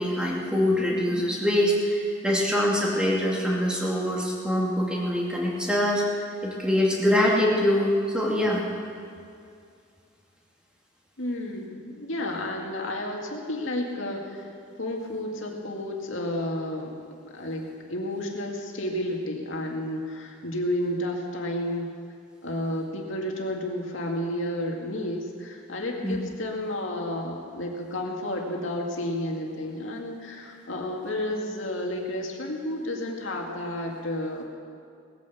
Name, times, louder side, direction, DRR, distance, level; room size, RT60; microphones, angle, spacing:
voice 1, 0.0-6.0 6.4-8.6 26.0-26.2, left 1 dB, 5° right, -3 dB, 2.4 m, -24 dB
voice 2, 11.2-14.5 14.8-16.9 17.2-21.9 22.4-34.4, left 1 dB, 85° left, 0 dB, 2.2 m, -31 dB
18.5 x 9.6 x 7.1 m, 2.4 s
head